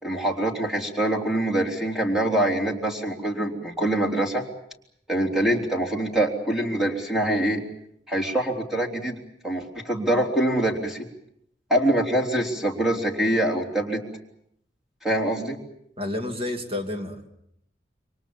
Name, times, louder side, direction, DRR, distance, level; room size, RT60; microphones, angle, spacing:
voice 1, 0.0-4.5 5.1-7.6 8.1-9.1 9.4-11.1 11.7-14.0 15.0-15.6, right 1 dB, 5° right, -1 dB, 3.5 m, -24 dB
voice 2, 16.0-17.3, left 1 dB, 35° right, 4 dB, 2.8 m, -30 dB
28.0 x 24.5 x 7.2 m, 0.74 s
head